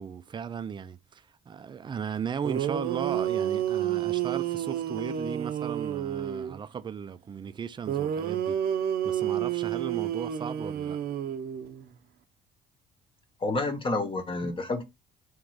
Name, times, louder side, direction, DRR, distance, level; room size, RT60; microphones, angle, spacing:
voice 1, 0.0-8.6 9.0-11.0, right 7 dB, 30° right, 0.4 m, -36 dB
sound 1, 2.4-6.6 7.9-11.9, right 10 dB, 65° right, 0.7 m, -30 dB
voice 2, 13.4-14.8, left 2 dB, 30° left, 0.9 m, -29 dB
3.7 x 3.0 x 4.7 m
cardioid pair, 110°, 17 cm